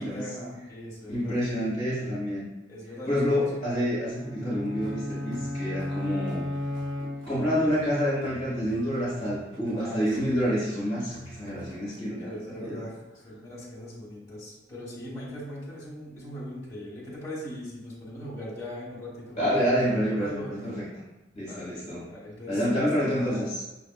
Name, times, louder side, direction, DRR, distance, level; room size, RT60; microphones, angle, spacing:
voice 1, 0.0-1.4 2.7-3.5 4.5-4.8 9.8-10.3 11.9-13.0 13.2-19.7 20.1-20.5 21.3-22.6 23.0-23.5, equal, 15° left, -7 dB, 1.2 m, -40 dB
voice 2, 1.1-2.5 3.1-6.4 7.3-12.3 12.6-12.8 19.4-20.9 21.3-22.0 22.5-23.5, equal, 40° left, -7 dB, 1.1 m, -28 dB
sound 1, 4.1-7.7, left 1 dB, ahead, 0.5 m, -34 dB
sound 2, 4.7-11.8, equal, 75° right, 0.8 m, -47 dB
5.9 x 2.4 x 2.3 m, 1.0 s
head